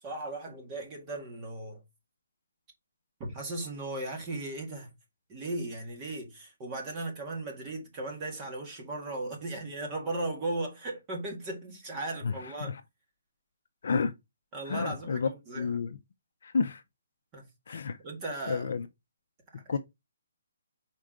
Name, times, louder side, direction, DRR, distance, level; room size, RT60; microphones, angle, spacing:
voice 1, 0.0-1.8 3.2-4.9 5.3-12.8 14.5-15.7 17.3-18.7 19.5-19.8, right 2 dB, 15° right, 1.8 m, -37 dB
voice 2, 12.2-12.8 13.8-14.1 14.6-15.3 15.6-16.0 16.4-16.8 17.7-18.0 18.5-18.9 19.7-19.8, left 5 dB, 50° left, 0.6 m, -30 dB
6.2 x 4.5 x 3.8 m
hypercardioid pair, 180°, 0 cm